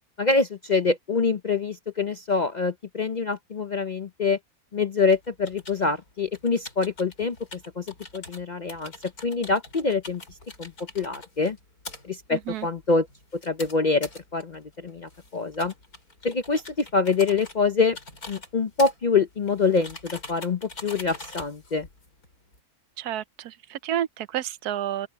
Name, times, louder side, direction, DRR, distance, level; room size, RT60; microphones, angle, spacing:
voice 1, 0.2-4.4 4.7-7.4 7.8-7.9 8.1-8.9 9.2-10.2 10.6-11.6 12.0-13.1 13.4-15.7 16.2-18.0 18.3-21.9, left 4 dB, 45° left, 0.6 m, -25 dB
sound 1, 5.1-22.6, left 2 dB, 75° left, 6.0 m, -45 dB
voice 2, 12.3-12.7 23.0-25.1, right 11 dB, 85° right, 1.2 m, -30 dB
open air
omnidirectional pair, 1.6 m